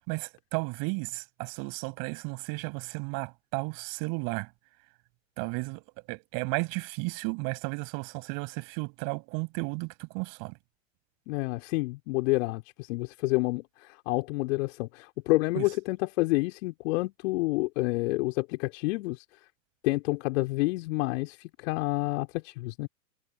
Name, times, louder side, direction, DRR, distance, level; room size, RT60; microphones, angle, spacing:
voice 1, 0.1-4.5 5.4-5.8 6.1-10.6 15.6-15.7, right 32 dB, 45° right, 6.4 m, -34 dB
voice 2, 11.3-19.3 19.8-22.9, left 23 dB, 50° left, 3.7 m, -29 dB
figure-of-eight pair, 100°, 48 cm